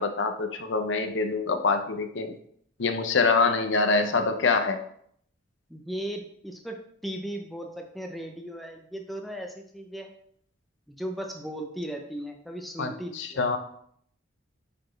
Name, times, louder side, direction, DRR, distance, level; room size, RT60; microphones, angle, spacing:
voice 1, 0.0-2.3 2.8-4.8 12.8-13.6, left 4 dB, 70° left, 7 dB, 0.7 m, -25 dB
voice 2, 5.7-6.8 7.0-10.1 10.9-13.4, right 1 dB, ahead, 2 dB, 0.6 m, -37 dB
9.1 x 4.3 x 3.2 m, 0.66 s
head